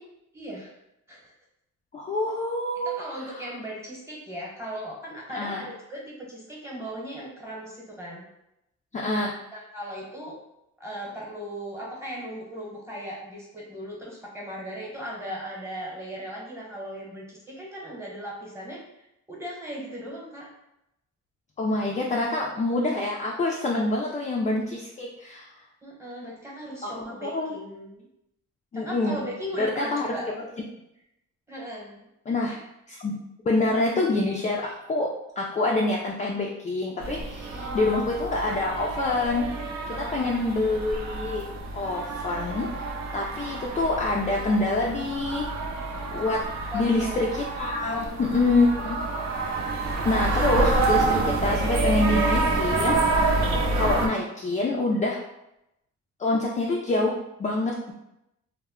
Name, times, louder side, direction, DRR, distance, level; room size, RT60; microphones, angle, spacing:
voice 1, 0.3-0.7 1.1-1.3 2.8-8.3 9.5-10.4 10.8-18.8 19.3-20.5 24.3-24.5 25.8-28.1 28.7-30.3 31.5-32.0 37.5-37.8 39.9-40.3 46.7-47.3 47.9-48.9, equal, 10° right, -4 dB, 1.0 m, -38 dB
voice 2, 1.9-2.9 5.3-5.6 8.9-9.3 21.6-25.5 26.8-26.9 27.2-27.5 28.7-29.2 29.6-30.1 32.3-32.5 32.9-33.2 33.5-35.1 35.4-39.4 39.9-41.5 41.7-42.7 43.1-45.5 46.1-46.4 46.7-49.0 50.0-53.4 53.8-55.2 56.2-57.9, left 2 dB, 25° left, -2 dB, 0.3 m, -26 dB
sound 1, 37.0-54.1, right 2 dB, 65° right, 0.5 m, -28 dB
2.1 x 2.1 x 3.5 m, 0.85 s
cardioid pair, 90°, 30 cm